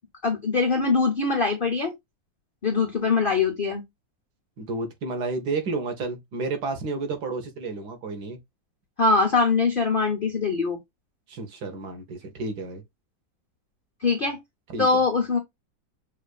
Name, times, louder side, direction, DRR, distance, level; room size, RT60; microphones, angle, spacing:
voice 1, 0.2-1.9 2.6-3.8 9.0-10.8 14.0-14.4 14.8-15.4, left 4 dB, 85° left, 0.4 m, -22 dB
voice 2, 4.6-8.4 11.3-12.8 14.7-14.9, right 3 dB, 65° right, 1.3 m, -31 dB
6.3 x 2.4 x 2.2 m
omnidirectional pair, 2.1 m